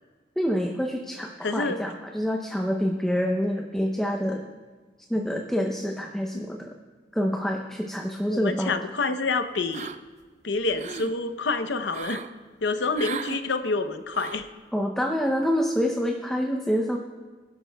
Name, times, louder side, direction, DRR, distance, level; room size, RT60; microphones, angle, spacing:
voice 1, 0.4-4.4 5.1-6.7 7.1-8.7 14.7-17.0, equal, 5° left, 1 dB, 0.6 m, -27 dB
voice 2, 1.4-1.8 6.3-6.4 8.3-9.9 10.4-12.2 12.6-14.5, left 3 dB, 75° left, 9 dB, 0.7 m, -27 dB
sound 1, 9.7-10.2 10.6-11.1 11.9-12.3 12.9-13.4 14.1-14.5, right 6 dB, 40° right, 0.4 m, -37 dB
21.5 x 12.0 x 2.3 m, 1.4 s
head